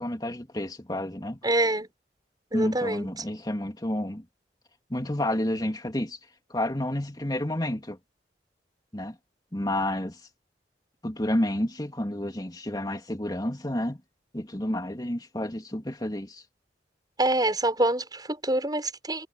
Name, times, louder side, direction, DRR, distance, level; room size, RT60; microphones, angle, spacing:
voice 1, 0.0-1.4 2.5-4.2 4.9-6.2 6.5-8.0 8.9-9.1 9.5-10.2 11.0-14.0 14.3-16.4, left 1 dB, 20° left, 2.8 m, -30 dB
voice 2, 1.4-1.9 2.5-3.1 17.2-19.3, right 1 dB, 20° right, 7.3 m, -26 dB
head